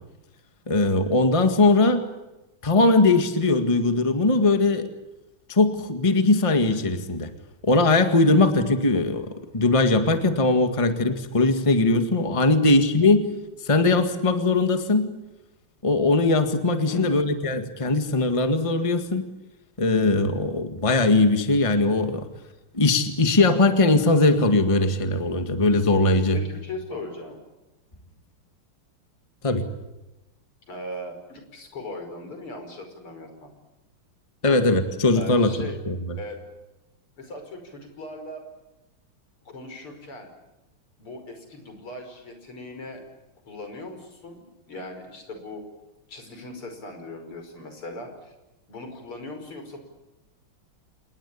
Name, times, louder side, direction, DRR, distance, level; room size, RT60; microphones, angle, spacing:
voice 1, 0.7-2.1 2.6-4.9 5.5-7.3 7.6-13.3 13.6-15.1 15.8-19.3 19.8-22.3 22.7-26.4 29.4-29.7 34.4-35.9, left 2 dB, 15° left, 8 dB, 1.7 m, -20 dB
voice 2, 16.9-17.3 26.3-27.4 30.7-33.5 34.4-34.6 35.1-35.8 36.2-36.4 37.2-38.4 39.4-40.3 41.0-43.0 43.5-45.6 46.1-48.3 48.7-49.8, left 2 dB, 80° left, 6 dB, 6.2 m, -39 dB
27.5 x 20.5 x 8.6 m, 1.0 s
omnidirectional pair, 2.4 m